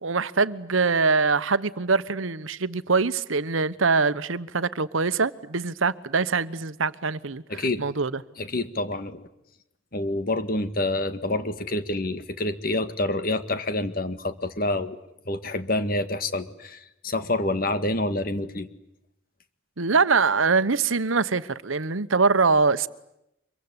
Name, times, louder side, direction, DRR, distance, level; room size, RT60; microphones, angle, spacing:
voice 1, 0.0-8.2 19.8-22.9, right 4 dB, 80° right, 1.1 m, -23 dB
voice 2, 7.5-7.8 8.4-9.3 9.9-15.0 15.3-18.7, left 2 dB, 45° left, 1.8 m, -27 dB
25.0 x 23.5 x 9.8 m
head